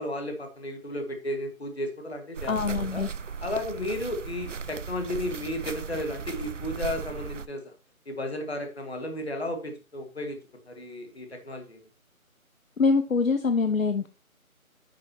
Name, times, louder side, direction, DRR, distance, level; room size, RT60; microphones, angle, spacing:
voice 1, 0.0-3.0 3.4-7.7 8.1-10.4 10.7-11.8, left 1 dB, 45° left, 4 dB, 1.9 m, -34 dB
sound 1, 2.3-7.5, right 6 dB, 60° right, 0.5 m, -37 dB
voice 2, 2.5-3.1 12.8-14.1, left 4 dB, 70° left, 8 dB, 0.9 m, -24 dB
10.0 x 6.1 x 3.0 m, 0.32 s
figure-of-eight pair, 175°, 43 cm